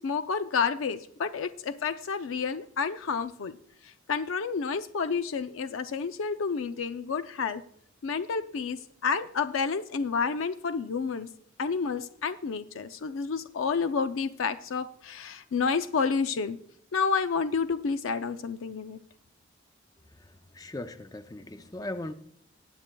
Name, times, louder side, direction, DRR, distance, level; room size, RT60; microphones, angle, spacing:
voice 1, 0.0-3.6 3.8-7.6 8.0-11.3 11.6-16.6 16.9-19.0, left 5 dB, 80° left, 10 dB, 0.5 m, -30 dB
voice 2, 20.0-22.1, left 1 dB, 20° left, 10 dB, 0.5 m, -39 dB
19.0 x 8.6 x 2.2 m, 0.69 s
head